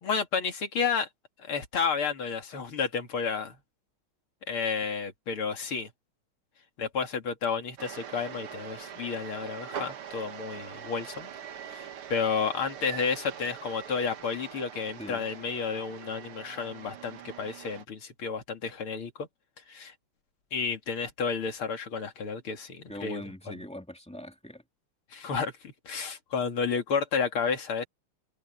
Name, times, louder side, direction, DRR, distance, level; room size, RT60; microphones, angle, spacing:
voice 1, 0.0-1.1 1.4-3.6 4.5-5.9 6.8-11.3 11.7-19.3 19.7-19.9 20.5-23.6 25.1-27.9, left 5 dB, 80° left, 3.2 m, -31 dB
sound 1, 7.8-17.8, right 8 dB, 85° right, 2.3 m, -43 dB
voice 2, 22.9-24.6, left 1 dB, 5° left, 2.5 m, -42 dB
omnidirectional pair, 2.3 m